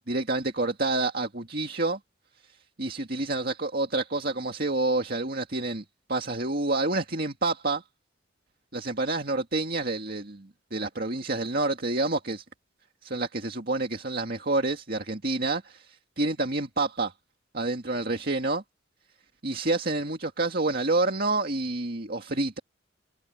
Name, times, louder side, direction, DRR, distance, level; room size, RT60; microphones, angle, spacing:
voice 1, 0.0-2.0 2.8-7.8 8.7-12.4 13.0-17.1 17.5-18.6 19.4-22.6, right 2 dB, 45° right, 2.1 m, -28 dB
head